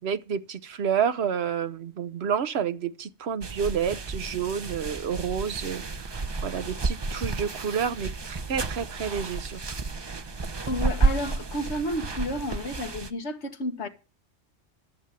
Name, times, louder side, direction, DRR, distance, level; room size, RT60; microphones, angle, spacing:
voice 1, 0.0-6.1 6.4-9.8, right 7 dB, 60° right, 1.1 m, -29 dB
sound 1, 3.4-13.1, right 3 dB, 30° right, 0.5 m, -31 dB
voice 2, 10.7-13.9, equal, 65° left, 1.8 m, -31 dB
12.5 x 7.1 x 7.6 m
omnidirectional pair, 1.3 m